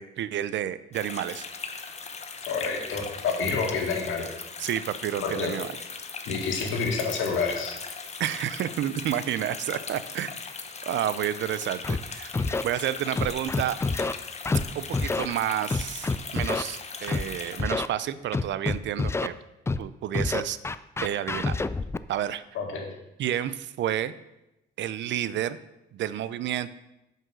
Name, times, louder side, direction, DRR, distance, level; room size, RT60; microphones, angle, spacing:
voice 1, 0.0-1.4 4.6-5.7 8.2-10.4 10.9-12.3 12.6-13.8 14.7-19.3 19.8-20.6 21.0-21.6 22.1-22.4 23.2-24.1 24.8-25.6 25.9-26.7, right 11 dB, 65° right, 15 dB, 0.5 m, -30 dB
sound 1, 0.9-17.6, left 5 dB, 35° left, 0.9 m, -39 dB
voice 2, 2.4-4.2 5.2-5.5 6.3-7.7 22.5-22.9, left 4 dB, 80° left, 2 dB, 1.9 m, -28 dB
Scratching (performance technique), 11.8-12.0 12.3-12.6 13.2-14.1 14.5-14.6 14.9-15.3 15.7-16.6 17.1-17.2 17.6-17.9 18.3-19.3 19.7-19.8 20.1-22.0, left 3 dB, 15° left, 0.3 m, -27 dB
7.5 x 5.5 x 6.2 m, 0.91 s
cardioid pair, 90°, 20 cm